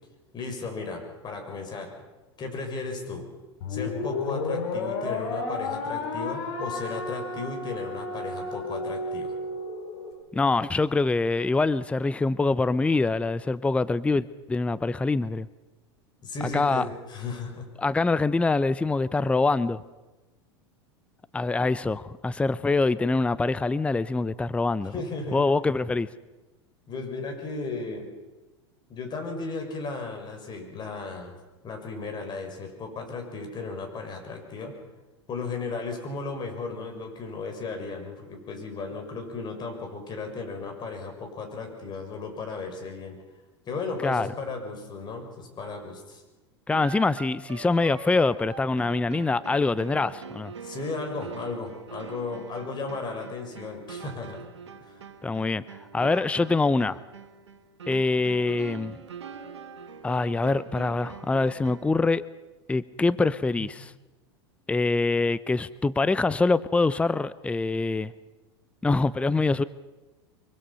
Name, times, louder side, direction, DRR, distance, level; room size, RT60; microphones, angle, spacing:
voice 1, 0.3-1.9 2.4-3.2 3.7-9.4 16.2-17.7 24.9-25.6 26.9-28.1 28.9-31.4 31.6-34.7 35.3-43.2 43.7-46.2 50.6-54.4 54.8-54.9, left 3 dB, 30° left, 4 dB, 6.2 m, -35 dB
sound 1, 3.6-10.1, left 3 dB, 65° left, 6.0 m, -32 dB
voice 2, 10.3-15.5 16.5-16.9 17.8-19.8 21.3-24.9 25.3-26.1 44.0-44.3 46.7-50.5 55.2-55.6 55.9-57.0 57.9-59.0 60.0-62.2 62.7-63.9 64.7-68.1 68.8-69.6, left 3 dB, 10° left, 17 dB, 0.6 m, -24 dB
sound 2, 46.7-62.0, right 6 dB, 80° right, 1.9 m, -43 dB
24.5 x 23.5 x 5.7 m, 1.1 s
hypercardioid pair, 95°, 14 cm